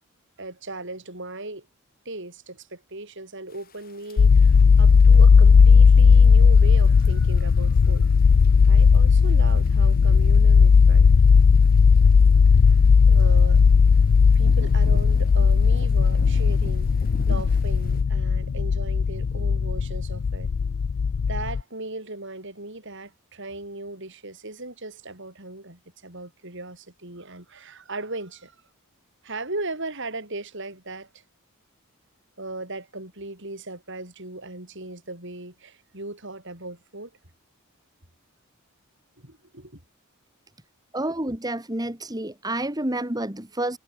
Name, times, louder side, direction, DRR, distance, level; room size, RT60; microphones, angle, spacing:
voice 1, 0.4-1.7 2.1-8.1 8.7-11.1 13.1-13.6 14.3-20.5 21.3-28.5 29.2-31.2 32.4-37.1 39.2-39.8, right 2 dB, 55° right, 7.6 m, -37 dB
sound 1, 3.5-18.0, equal, 45° left, 7.4 m, -42 dB
sound 2, 4.2-21.6, left 5 dB, 60° left, 0.4 m, -16 dB
voice 2, 40.9-43.8, right 1 dB, 20° right, 2.4 m, -29 dB
head